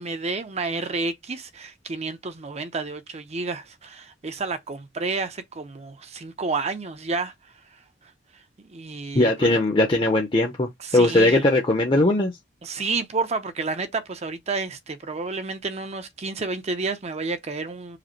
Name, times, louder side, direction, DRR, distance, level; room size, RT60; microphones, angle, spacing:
voice 1, 0.0-7.3 7.7-8.4 8.7-9.6 10.8-11.5 12.6-18.0, right 3 dB, 35° right, 0.7 m, -30 dB
voice 2, 9.1-12.3, left 1 dB, 30° left, 0.7 m, -20 dB
5.0 x 2.1 x 4.4 m
head